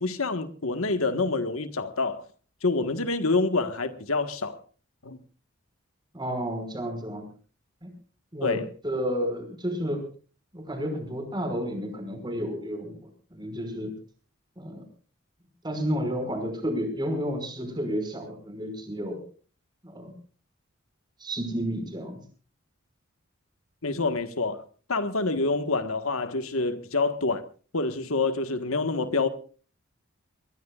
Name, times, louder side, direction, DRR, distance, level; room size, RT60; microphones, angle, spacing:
voice 1, 0.0-2.2 2.6-4.6 5.0-5.2 8.4-8.6 23.8-24.6 24.9-27.4 27.7-29.3, left 3 dB, 85° left, 1.5 m, -27 dB
voice 2, 6.1-7.3 7.8-7.9 8.3-10.0 10.5-13.0 13.3-13.9 14.6-14.8 15.6-19.2 19.8-20.1 21.2-22.2, equal, 20° right, 5.7 m, -31 dB
23.0 x 22.0 x 2.5 m
head